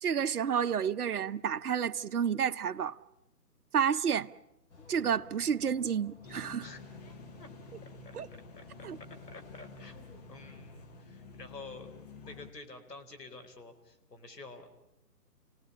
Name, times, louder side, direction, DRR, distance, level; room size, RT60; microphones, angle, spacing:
voice 1, 0.0-3.0 3.7-4.3 4.9-6.7 8.1-8.3 8.8-9.0, right 7 dB, 65° right, 0.8 m, -30 dB
sound 1, 4.7-11.1, left 3 dB, 45° left, 3.8 m, -55 dB
sound 2, 6.2-12.5, left 3 dB, 25° left, 1.0 m, -50 dB
voice 2, 8.6-8.9 9.3-11.9 12.2-14.7, left 3 dB, 80° left, 4.3 m, -49 dB
29.5 x 18.5 x 8.6 m
figure-of-eight pair, 150°, 48 cm